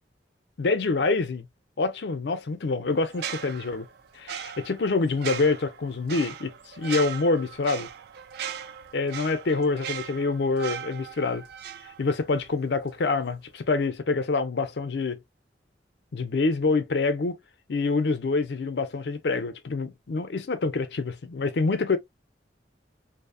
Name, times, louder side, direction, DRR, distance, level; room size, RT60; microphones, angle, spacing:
voice 1, 0.6-1.5 1.8-3.9 4.1-7.9 8.9-11.4 12.0-15.2 16.1-17.3 17.7-22.0, left 3 dB, 65° left, 0.5 m, -26 dB
sound 1, 3.1-12.5 12.8-13.0, right 9 dB, 60° right, 0.3 m, -38 dB
2.6 x 2.0 x 2.5 m
head